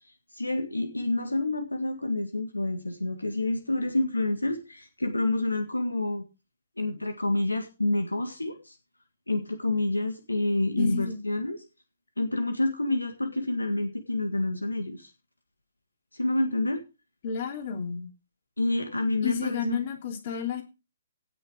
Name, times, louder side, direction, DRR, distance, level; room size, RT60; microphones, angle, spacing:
voice 1, 0.3-6.3 6.8-8.8 9.3-11.6 12.2-15.1 16.1-16.8 18.6-19.8, left 2 dB, 90° left, 7 dB, 1.8 m, -28 dB
voice 2, 10.8-11.2 17.2-18.1 19.2-20.6, left 7 dB, 45° left, 5 dB, 3.1 m, -31 dB
17.5 x 6.6 x 4.9 m, 0.30 s
figure-of-eight pair, 125°, 0 cm